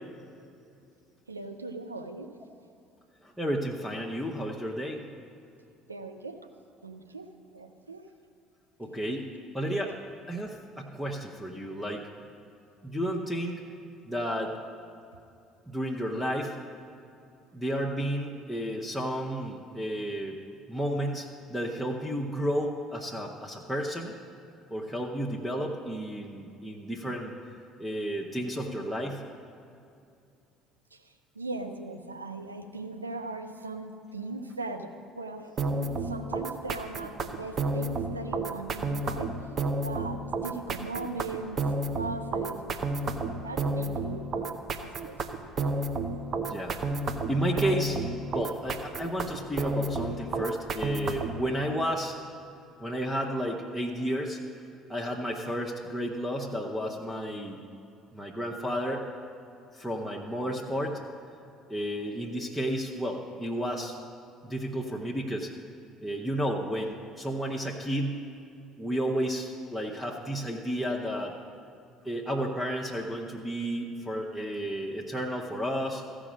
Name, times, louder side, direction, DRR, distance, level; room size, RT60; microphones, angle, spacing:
voice 1, 1.3-2.3 5.9-6.5 6.8-8.1 30.9-31.0 31.4-39.4 39.8-44.5 44.8-45.5, right 3 dB, 90° right, 6 dB, 0.5 m, -39 dB
voice 2, 3.2-5.1 8.8-10.0 10.3-12.1 12.8-13.6 14.0-14.6 15.7-16.6 17.5-20.4 20.7-24.1 24.7-27.3 27.8-29.2 46.4-46.7 47.3-48.0 48.3-52.2 52.8-54.4 54.9-57.7 58.1-59.0 59.7-61.0 61.7-64.0 64.4-65.5 66.0-68.2 68.8-71.3 72.0-76.0, equal, ahead, -1 dB, 0.9 m, -32 dB
sound 1, 35.6-51.4, right 3 dB, 40° right, 0.8 m, -31 dB
14.5 x 5.0 x 6.2 m, 2.6 s
figure-of-eight pair, 55°, 0 cm